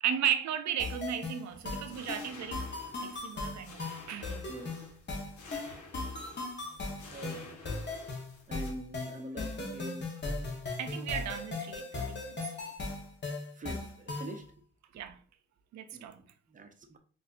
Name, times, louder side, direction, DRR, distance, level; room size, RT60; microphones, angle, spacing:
voice 1, 0.0-2.7 3.0-3.8 4.1-4.5 10.8-12.5 14.9-15.2 15.7-16.2, right 9 dB, 70° right, 0.5 m, -35 dB
sound 1, 0.8-14.4, left 3 dB, 40° left, 0.9 m, -38 dB
sound 2, 1.5-8.7, left 3 dB, 90° left, 0.9 m, -51 dB
voice 2, 4.5-4.9 7.1-7.6 7.9-8.1 8.5-10.2 13.5-14.5 15.9-17.0, right 1 dB, 25° right, 0.6 m, -45 dB
4.1 x 2.6 x 2.4 m
cardioid pair, 90°, 29 cm